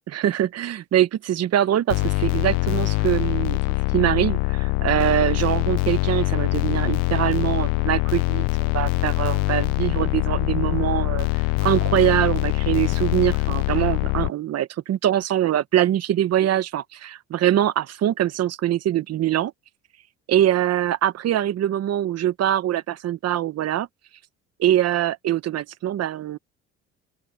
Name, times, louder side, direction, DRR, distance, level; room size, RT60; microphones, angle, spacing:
voice 1, 0.1-3.6 3.9-19.5 20.3-23.9 24.6-26.4, right 12 dB, 55° right, 1.2 m, -23 dB
sound 1, 1.9-14.3, left 24 dB, 85° left, 0.7 m, -23 dB
open air
supercardioid pair, 85°, 31 cm